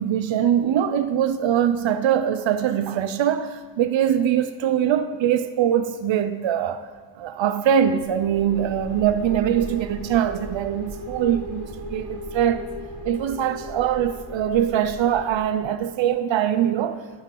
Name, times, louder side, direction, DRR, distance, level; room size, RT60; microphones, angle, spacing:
voice 1, 0.0-6.9 7.2-12.7 13.0-17.0, right 9 dB, 85° right, 0.6 m, -22 dB
sound 1, 8.0-15.7, equal, 55° right, 1.8 m, -37 dB
11.5 x 8.8 x 3.8 m
wide cardioid pair, 150°, 44 cm